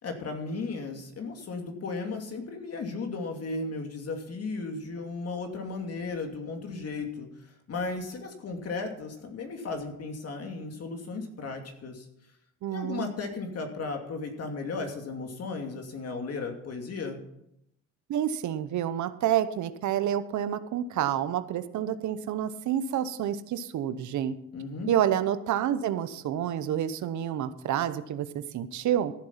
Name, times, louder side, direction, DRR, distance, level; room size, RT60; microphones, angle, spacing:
voice 1, 0.0-7.3 7.7-12.1 12.7-17.2 24.5-24.9, left 3 dB, 55° left, 3 dB, 2.6 m, -35 dB
voice 2, 12.6-13.1 18.1-24.3 24.9-29.1, right 10 dB, 75° right, 12 dB, 0.9 m, -29 dB
14.0 x 7.7 x 5.7 m, 0.78 s
cardioid pair, 90°, 30 cm